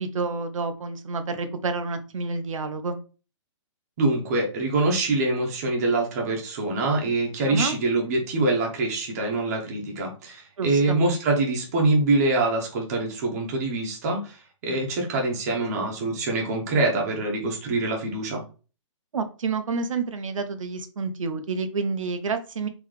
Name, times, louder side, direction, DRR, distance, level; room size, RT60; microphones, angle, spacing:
voice 1, 0.0-3.0 7.5-7.8 10.6-11.0 19.1-22.7, right 4 dB, 85° right, 9 dB, 0.8 m, -29 dB
voice 2, 4.0-14.4 14.6-18.4, right 2 dB, 30° right, 0 dB, 1.0 m, -24 dB
3.9 x 3.1 x 3.1 m, 0.35 s
hypercardioid pair, 170°, 16 cm